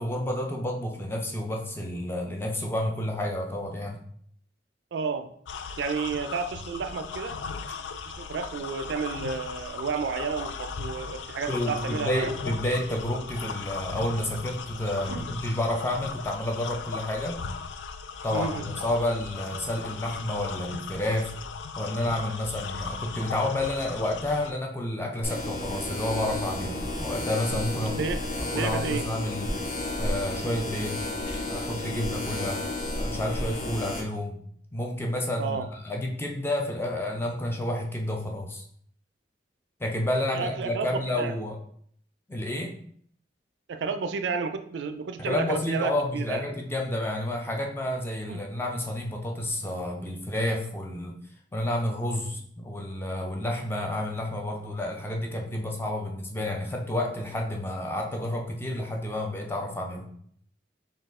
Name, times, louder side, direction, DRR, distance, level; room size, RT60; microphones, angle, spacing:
voice 1, 0.0-4.0 11.5-17.4 18.2-21.3 21.8-28.1 28.4-29.6 30.0-31.1 31.5-32.6 32.9-34.4 34.7-38.6 39.8-41.6 42.3-42.7 45.2-51.2 51.5-60.1, left 1 dB, 15° left, 1 dB, 0.4 m, -30 dB
voice 2, 4.9-5.3 5.8-7.4 8.1-12.3 15.1-15.3 18.3-18.7 27.9-28.2 28.5-29.1 35.4-35.7 40.3-40.9 41.2-41.3 43.7-46.4 48.3-48.4, right 5 dB, 70° right, 9 dB, 0.3 m, -31 dB
sound 1, 5.5-24.5, left 5 dB, 80° left, 0.3 m, -38 dB
sound 2, 25.2-34.0, left 1 dB, 45° left, 0.7 m, -32 dB
4.1 x 2.3 x 3.6 m, 0.63 s
head